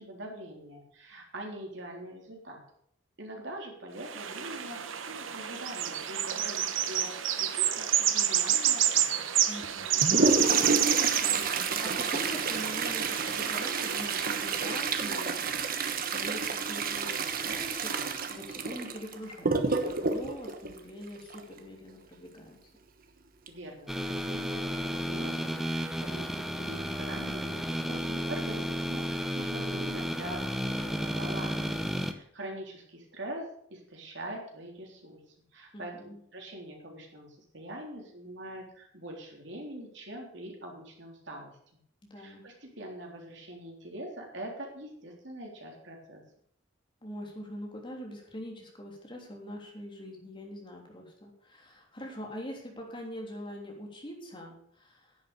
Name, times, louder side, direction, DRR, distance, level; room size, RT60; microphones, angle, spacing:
voice 1, 0.0-2.6 3.2-9.2 23.5-35.2 35.5-35.9 36.3-41.5 42.2-46.2, right 1 dB, 65° right, 0 dB, 3.7 m, -43 dB
sound 1, 4.0-14.6, right 10 dB, 85° right, 1.1 m, -29 dB
voice 2, 9.5-18.0 18.3-22.6 35.7-36.2 42.1-42.5 47.0-55.2, equal, 25° left, 0 dB, 3.2 m, -43 dB
Toilet flush, 9.6-21.6 23.5-23.6 23.9-24.0 24.8-24.9 25.5-25.8 26.2-26.4, right 4 dB, 45° right, 1.1 m, -30 dB
sound 2, 23.9-32.1, equal, ahead, 0.8 m, -33 dB
10.5 x 8.4 x 6.8 m, 0.67 s
head